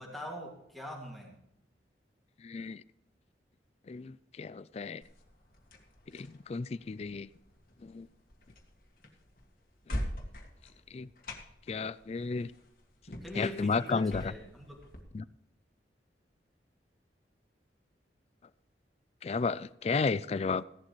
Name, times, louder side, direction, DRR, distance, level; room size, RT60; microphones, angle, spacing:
voice 1, 0.0-1.3 13.2-14.8, left 1 dB, ahead, -1 dB, 2.2 m, -42 dB
voice 2, 2.4-2.8 3.9-5.0 6.1-7.3 7.8-8.1 10.9-11.1 11.7-12.5 13.3-14.3 15.1-15.2 19.2-20.6, left 4 dB, 35° left, 19 dB, 0.3 m, -33 dB
Back-Door Close & Lock, 5.0-15.0, equal, 50° left, 1.9 m, -44 dB
16.0 x 11.5 x 3.1 m, 0.84 s
head